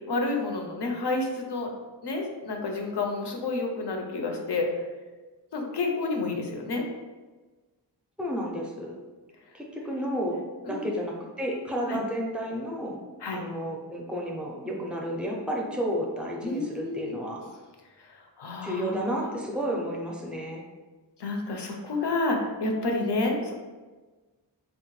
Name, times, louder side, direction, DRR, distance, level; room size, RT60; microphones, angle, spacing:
voice 1, 0.1-1.7 2.0-4.7 5.5-6.8 10.2-10.4 10.6-10.9 11.9-12.0 13.2-13.5 16.4-17.2 18.0-19.3 21.2-23.5, left 3 dB, 65° left, 2 dB, 0.6 m, -30 dB
voice 2, 8.2-9.0 9.5-10.4 10.7-13.0 13.3-17.4 18.6-20.6, equal, ahead, -2 dB, 0.5 m, -31 dB
3.5 x 2.1 x 3.0 m, 1.3 s
wide cardioid pair, 95°, 44 cm